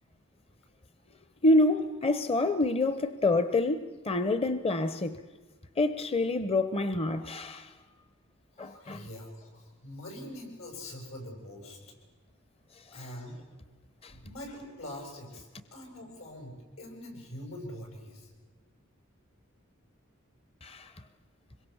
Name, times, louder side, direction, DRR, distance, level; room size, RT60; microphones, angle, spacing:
voice 1, 1.4-5.2 5.8-7.7 8.6-9.1 12.9-13.1 14.0-14.1 20.6-20.9, left 2 dB, 30° left, 0.7 m, -27 dB
voice 2, 8.5-11.8 12.9-13.4 14.1-18.3, left 1 dB, 85° left, 7.7 m, -44 dB
25.5 x 22.5 x 7.2 m
head